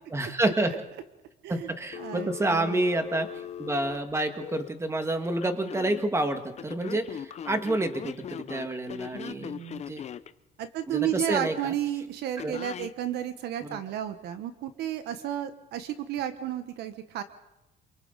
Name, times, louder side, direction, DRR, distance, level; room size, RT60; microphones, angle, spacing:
voice 1, 0.1-0.7 1.5-3.3 3.6-9.5 9.9-10.0 10.9-11.7 12.4-12.6 13.6-13.8, right 2 dB, 15° right, 7 dB, 1.9 m, -29 dB
Telephone, 1.9-4.7 5.4-6.0 6.6-10.3 12.4-12.9, left 9 dB, 40° left, 0.7 m, -39 dB
voice 2, 2.0-2.8 9.1-9.8 10.6-17.2, right 11 dB, 75° right, 10 dB, 1.2 m, -32 dB
27.5 x 23.0 x 4.0 m, 0.98 s
cardioid pair, 110°, 17 cm